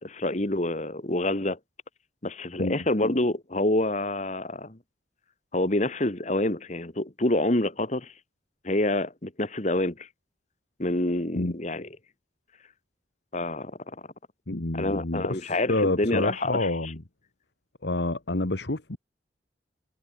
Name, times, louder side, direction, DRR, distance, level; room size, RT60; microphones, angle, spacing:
voice 1, 0.0-1.6 2.2-4.8 5.5-8.1 8.6-10.1 10.8-11.9 13.3-13.7 14.7-16.7, left 1 dB, 40° left, 1.8 m, -27 dB
voice 2, 14.5-17.0 17.8-19.0, left 2 dB, 65° left, 1.7 m, -28 dB
head